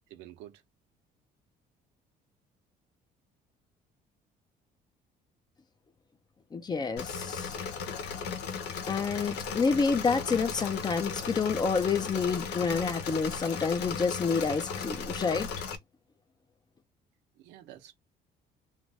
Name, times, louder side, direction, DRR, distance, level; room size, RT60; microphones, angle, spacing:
voice 1, 0.1-0.6 17.4-17.9, right 13 dB, 90° right, 0.8 m, -49 dB
voice 2, 6.5-7.5 8.9-15.5, left 5 dB, 25° left, 0.5 m, -28 dB
Engine / Mechanisms, 7.0-15.8, left 6 dB, 85° left, 0.8 m, -36 dB
2.6 x 2.5 x 3.2 m
cardioid pair, 110°, 17 cm